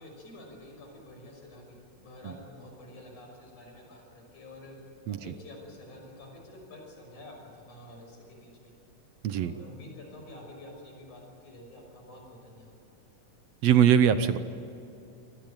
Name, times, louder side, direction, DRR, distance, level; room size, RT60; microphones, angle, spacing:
voice 1, 0.0-4.8 5.1-8.7 9.3-12.7, left 1 dB, 90° left, 2 dB, 7.4 m, -49 dB
voice 2, 13.6-14.4, right 9 dB, 70° right, 11 dB, 1.9 m, -21 dB
25.5 x 18.5 x 9.1 m, 2.8 s
omnidirectional pair, 3.3 m